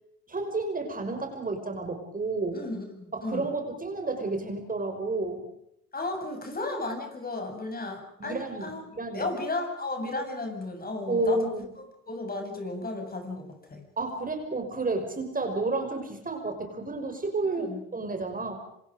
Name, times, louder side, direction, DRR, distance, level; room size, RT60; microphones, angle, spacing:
voice 1, 0.3-2.6 3.1-5.5 8.2-9.3 10.1-10.2 11.1-11.7 14.0-18.6, right 3 dB, 25° right, 5 dB, 5.9 m, -31 dB
voice 2, 2.5-3.5 5.9-8.8 9.1-11.5 12.1-13.8 17.5-17.8, left 2 dB, 30° left, 4 dB, 7.6 m, -34 dB
27.0 x 26.5 x 5.2 m, 0.73 s
hypercardioid pair, 60°, 32 cm